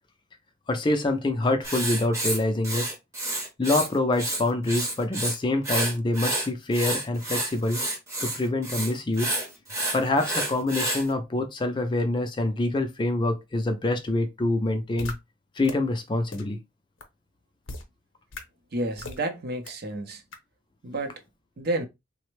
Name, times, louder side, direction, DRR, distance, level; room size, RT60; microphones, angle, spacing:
voice 1, 0.7-2.9 3.6-7.8 8.2-9.3 9.9-15.1 15.6-16.6, left 2 dB, 25° left, 0.4 m, -26 dB
Writing, 1.6-3.9 4.1-5.3 5.6-11.0, right 2 dB, 15° right, 0.7 m, -29 dB
sound 1, 15.0-15.1 15.6-15.7 16.3-16.4 17.0-17.1 17.7-17.8 18.3-18.4 19.0-19.2 19.7-19.8 20.3-20.4, left 3 dB, 70° left, 0.7 m, -37 dB
voice 2, 18.7-20.2 20.8-21.2 21.6-21.9, right 2 dB, 50° right, 0.6 m, -30 dB
3.3 x 2.0 x 3.1 m
head